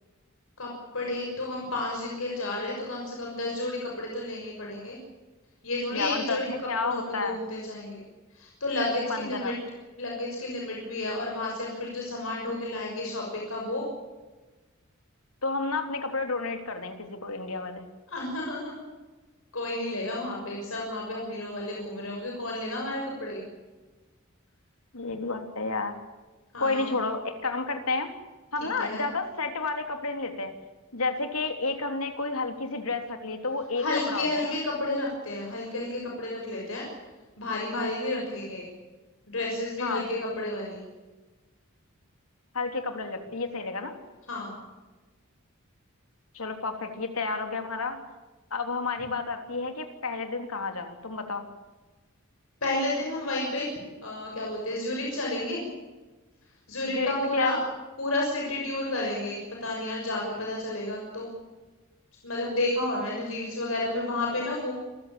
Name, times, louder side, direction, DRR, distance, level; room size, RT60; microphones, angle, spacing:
voice 1, 0.6-5.0 5.6-8.0 8.3-9.5 10.0-13.8 18.1-18.8 19.5-23.4 26.5-27.0 28.8-29.0 33.8-36.9 37.4-38.7 39.3-40.8 44.3-44.5 52.6-53.7 54.0-55.6 56.7-57.6 58.0-61.3 62.2-64.7, left 2 dB, 70° left, -1 dB, 6.4 m, -31 dB
voice 2, 5.9-7.4 9.1-9.5 15.4-17.8 24.9-26.0 26.6-28.1 28.5-30.5 30.9-34.5 39.8-40.1 42.5-44.0 46.3-48.0 48.5-51.5 56.9-57.6, left 3 dB, 85° left, 6 dB, 3.4 m, -31 dB
28.0 x 15.0 x 8.8 m, 1.2 s
head